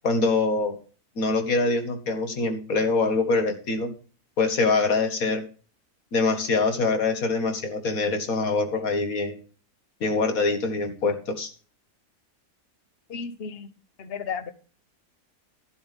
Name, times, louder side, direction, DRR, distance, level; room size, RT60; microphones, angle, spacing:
voice 1, 0.0-0.8 1.2-3.9 4.4-5.4 6.1-9.4 10.0-11.5, left 3 dB, 65° left, 7 dB, 2.2 m, -24 dB
voice 2, 13.1-13.7 14.0-14.5, left 6 dB, 45° left, 12 dB, 1.1 m, -33 dB
11.5 x 10.5 x 3.6 m, 0.38 s
omnidirectional pair, 1.6 m